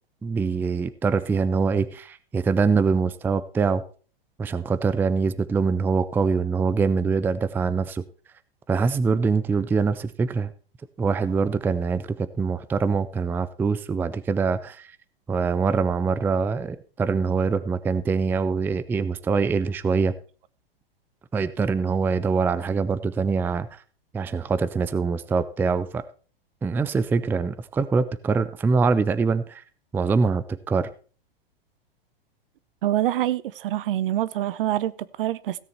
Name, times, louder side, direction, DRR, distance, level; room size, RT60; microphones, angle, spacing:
voice 1, 0.2-3.8 4.4-8.0 8.7-10.5 11.0-14.9 15.3-20.1 21.3-23.8 24.1-26.0 26.6-29.6 29.9-30.9, right 5 dB, 5° right, 0.4 m, -24 dB
voice 2, 32.8-35.6, right 13 dB, 65° right, 0.8 m, -25 dB
16.5 x 6.9 x 4.4 m
hypercardioid pair, 110°, 30 cm